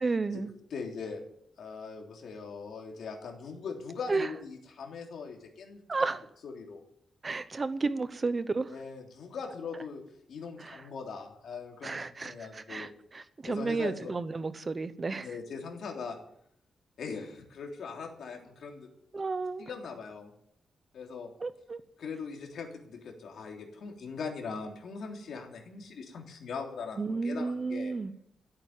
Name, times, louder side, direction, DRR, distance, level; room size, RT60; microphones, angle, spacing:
voice 1, 0.0-0.5 4.1-4.3 5.9-6.2 7.2-8.7 10.6-10.8 11.8-15.3 19.1-19.6 21.4-21.8 27.0-28.1, right 3 dB, 25° right, 13 dB, 0.8 m, -32 dB
voice 2, 0.7-1.2 1.6-5.8 6.4-6.8 8.7-10.0 10.3-12.9 13.4-14.1 15.2-16.2 17.0-18.9 19.6-20.3 20.9-21.3 22.0-27.9, left 5 dB, 65° left, 1 dB, 3.4 m, -40 dB
15.0 x 8.9 x 9.1 m, 0.72 s
wide cardioid pair, 180°, 0 cm